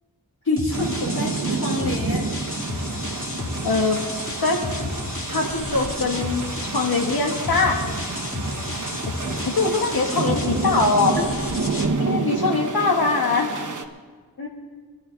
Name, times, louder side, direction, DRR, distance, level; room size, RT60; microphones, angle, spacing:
voice 1, 0.4-2.3 11.2-11.3 14.4-14.5, left 2 dB, 55° left, -5 dB, 2.2 m, -27 dB
sound 1, 0.6-11.8, left 2 dB, 35° left, 1.8 m, -31 dB
sound 2, 0.7-13.8, right 4 dB, 55° right, 1.1 m, -29 dB
voice 2, 3.6-4.0 4.4-4.6 5.3-8.1 9.4-11.2 12.0-13.5, left 3 dB, 75° left, 1 dB, 1.9 m, -22 dB
21.5 x 12.0 x 3.6 m, 1.5 s
wide cardioid pair, 95°, 37 cm